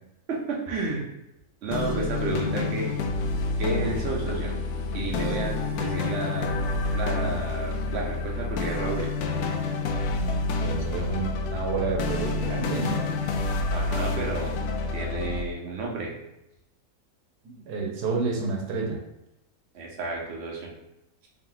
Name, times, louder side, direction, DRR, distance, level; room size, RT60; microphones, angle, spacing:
voice 1, 0.3-1.1 1.6-2.9 3.6-4.5 4.9-6.5 6.9-9.1 13.7-14.6 14.9-16.1 19.7-20.7, right 3 dB, 50° right, -2 dB, 1.0 m, -31 dB
sound 1, 1.7-15.4, left 3 dB, 80° left, 1.0 m, -28 dB
voice 2, 10.1-13.1 17.4-19.0, right 4 dB, 85° right, 0 dB, 1.4 m, -30 dB
3.7 x 2.9 x 3.8 m, 0.88 s
omnidirectional pair, 1.6 m